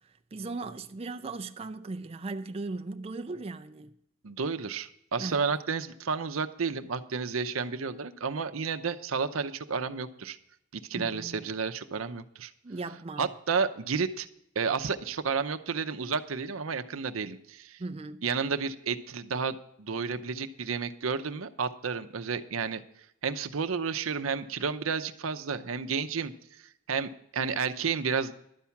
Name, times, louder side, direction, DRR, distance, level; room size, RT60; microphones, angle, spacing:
voice 1, 0.3-3.9 5.2-5.4 10.9-11.4 12.6-13.3 17.8-18.2, right 3 dB, 30° right, 0.4 m, -38 dB
voice 2, 4.2-10.4 10.7-12.5 13.2-14.3 14.6-17.8 18.2-22.8 23.2-26.6 26.9-28.3, right 5 dB, 85° right, 0.7 m, -31 dB
12.0 x 8.4 x 5.8 m
head